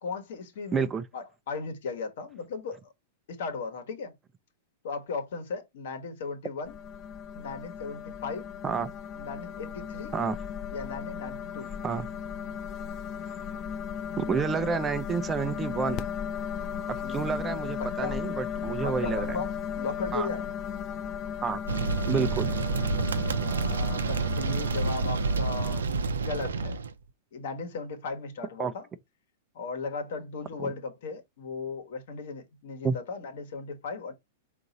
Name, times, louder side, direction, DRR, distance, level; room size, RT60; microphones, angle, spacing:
voice 1, 0.0-0.9 1.1-2.8 3.3-4.1 4.8-6.7 7.3-8.5 9.1-10.1 10.7-11.7 16.9-18.2 18.8-20.5 23.4-26.8 27.3-28.9 29.5-34.1, left 4 dB, 65° left, 1.1 m, -37 dB
voice 2, 0.7-1.0 8.6-8.9 10.1-10.4 11.8-12.1 14.2-16.1 17.1-19.4 20.1-20.3 21.4-21.6 22.1-22.5 28.6-28.7 30.6-30.7 32.8-33.0, right 5 dB, 20° right, 0.5 m, -29 dB
sound 1, 6.6-25.8, left 7 dB, 35° left, 0.5 m, -36 dB
sound 2, 21.7-26.9, right 4 dB, 80° right, 0.5 m, -28 dB
3.7 x 2.6 x 4.0 m
hypercardioid pair, 105°, 0 cm